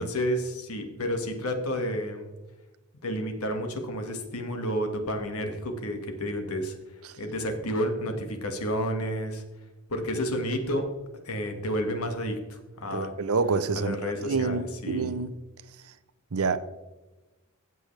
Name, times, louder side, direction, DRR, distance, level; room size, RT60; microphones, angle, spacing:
voice 1, 0.0-2.2 3.0-6.8 7.2-9.4 9.9-10.8 11.2-13.2 13.8-15.1, equal, 80° left, 1.7 m, -30 dB
voice 2, 12.9-15.4 16.3-16.6, right 4 dB, 75° right, 0.7 m, -28 dB
14.5 x 7.8 x 3.3 m
head